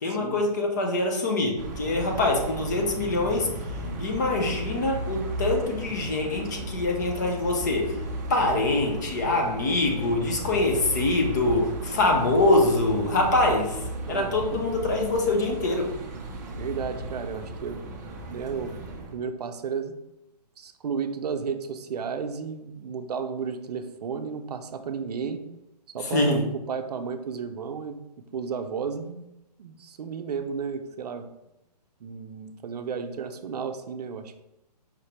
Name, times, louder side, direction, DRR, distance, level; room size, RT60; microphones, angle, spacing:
voice 1, 0.0-3.5 4.0-8.0 8.3-15.9 26.0-26.5, left 2 dB, 25° left, 2 dB, 0.5 m, -24 dB
sound 1, 1.6-19.1, right 1 dB, 25° right, 0.5 m, -35 dB
voice 2, 14.0-14.7 16.6-17.8 18.3-18.7 19.1-19.9 20.6-25.4 25.9-26.4 26.7-28.0 28.3-29.2 29.6-31.3 32.0-34.4, right 6 dB, 70° right, 8 dB, 0.5 m, -33 dB
5.0 x 3.3 x 2.8 m, 0.91 s
hypercardioid pair, 175°, 21 cm